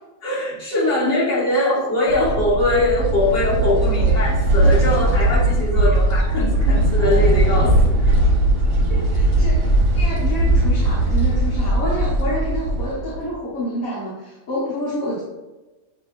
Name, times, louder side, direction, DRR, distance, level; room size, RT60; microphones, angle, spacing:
voice 1, 0.2-8.2, left 1 dB, 55° left, -8 dB, 2.0 m, -21 dB
sound 1, 2.1-11.5, equal, 20° right, 0.8 m, -26 dB
sound 2, 2.4-13.3, right 1 dB, 50° right, 0.9 m, -19 dB
voice 2, 8.9-9.7 9.9-15.2, left 1 dB, 70° left, -8 dB, 1.6 m, -28 dB
6.8 x 2.9 x 2.5 m, 1.1 s
omnidirectional pair, 1.6 m